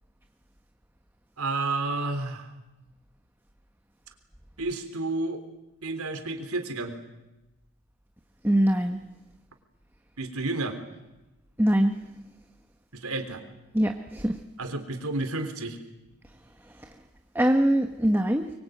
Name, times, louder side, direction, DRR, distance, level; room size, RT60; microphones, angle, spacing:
voice 1, 1.4-2.5 4.6-5.4 5.8-6.9 10.2-10.8 12.9-13.4 14.6-15.8, right 2 dB, 80° right, 7 dB, 3.6 m, -31 dB
voice 2, 8.4-9.0 11.6-12.0 13.7-14.4 16.8-16.9 17.3-18.5, right 1 dB, 10° right, 5 dB, 1.1 m, -23 dB
25.0 x 23.0 x 9.2 m, 1.0 s
head